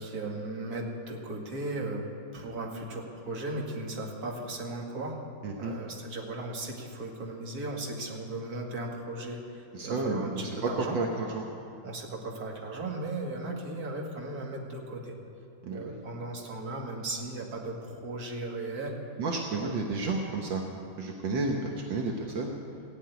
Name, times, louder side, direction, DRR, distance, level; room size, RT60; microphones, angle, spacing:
voice 1, 0.0-2.1 2.3-5.2 5.6-11.0 11.8-15.1 15.7-19.0 19.6-19.7, right 2 dB, 50° right, 0 dB, 2.3 m, -36 dB
voice 2, 5.4-5.7 9.7-10.5 10.9-11.4 15.6-15.9 19.2-20.7 21.0-21.6 21.9-22.5, right 3 dB, 75° right, 1 dB, 1.8 m, -31 dB
16.0 x 9.0 x 9.5 m, 2.7 s
omnidirectional pair, 2.1 m